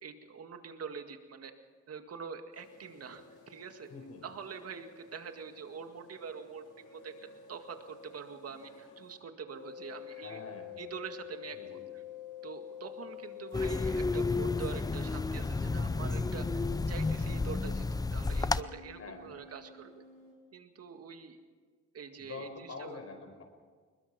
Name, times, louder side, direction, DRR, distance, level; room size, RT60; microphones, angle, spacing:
voice 1, 0.0-1.5 1.9-3.9 4.2-7.1 7.5-10.4 10.8-12.0 12.4-20.0 20.5-21.4 21.9-23.0, right 6 dB, 50° right, 7 dB, 2.1 m, -45 dB
sound 1, 2.5-9.2 9.5-13.8 14.1-20.3, left 9 dB, 90° left, 4.8 m, -50 dB
voice 2, 3.9-4.2 10.1-10.9 11.5-11.8 19.0-19.4 22.2-23.4, left 4 dB, 50° left, 4 dB, 5.1 m, -46 dB
sound 2, 13.5-18.6, left 3 dB, 15° left, 0.5 m, -31 dB
21.5 x 21.0 x 6.0 m, 1.5 s
cardioid pair, 90°, 30 cm